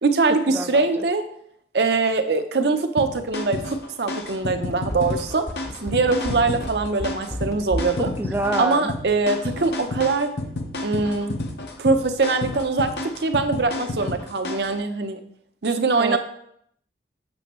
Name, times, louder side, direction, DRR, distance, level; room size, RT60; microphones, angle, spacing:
voice 1, 0.0-1.3 1.7-5.4 5.8-8.1 8.6-10.3 10.8-11.3 11.8-12.9 13.2-15.2 15.6-16.2, right 3 dB, 70° right, 7 dB, 0.7 m, -22 dB
sound 1, 3.0-14.8, left 2 dB, 65° left, 0.7 m, -31 dB
sound 2, 4.6-8.0 8.3-8.4, left 1 dB, 15° left, 0.8 m, -31 dB
voice 2, 8.2-8.9 16.0-16.2, right 2 dB, 10° right, 5 dB, 0.3 m, -26 dB
7.6 x 6.1 x 3.1 m, 0.71 s
head